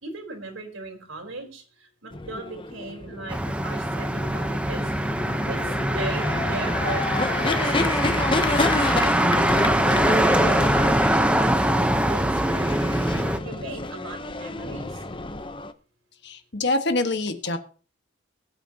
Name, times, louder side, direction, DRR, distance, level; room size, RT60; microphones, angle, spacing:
voice 1, 0.0-5.2 5.5-9.5 10.4-12.8 13.4-15.0, right 2 dB, 75° right, 4 dB, 4.1 m, -38 dB
sound 1, 2.1-15.7, left 2 dB, 25° left, 0.8 m, -29 dB
Motor vehicle (road), 3.3-13.4, right 1 dB, 5° right, 0.9 m, -23 dB
voice 2, 16.2-17.6, left 2 dB, 55° left, 7 dB, 1.5 m, -25 dB
22.5 x 8.9 x 2.9 m, 0.39 s
head